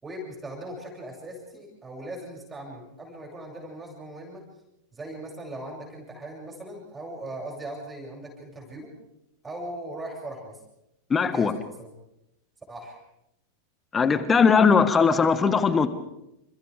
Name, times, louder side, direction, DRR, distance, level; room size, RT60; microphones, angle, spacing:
voice 1, 0.0-4.4 4.9-8.9 9.4-10.6 11.2-11.9 12.7-13.0, right 1 dB, 15° right, -1 dB, 7.2 m, -39 dB
voice 2, 11.1-11.5 13.9-15.9, left 5 dB, 20° left, 12 dB, 1.6 m, -19 dB
30.0 x 29.5 x 3.6 m, 0.87 s
figure-of-eight pair, 90°, 0 cm